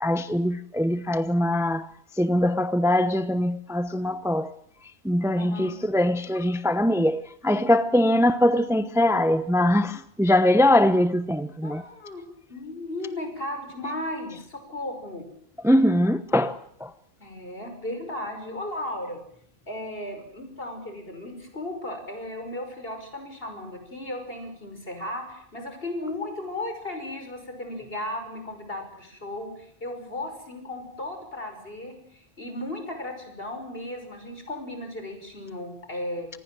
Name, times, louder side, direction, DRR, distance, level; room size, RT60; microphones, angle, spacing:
voice 1, 0.0-4.6 5.0-11.8 15.6-16.9, left 1 dB, 5° right, 0.8 m, -22 dB
voice 2, 5.4-5.7 11.6-12.2 12.5-15.3 17.2-19.2 19.7-36.3, left 1 dB, 65° left, 6.2 m, -35 dB
26.5 x 20.0 x 7.7 m
omnidirectional pair, 1.1 m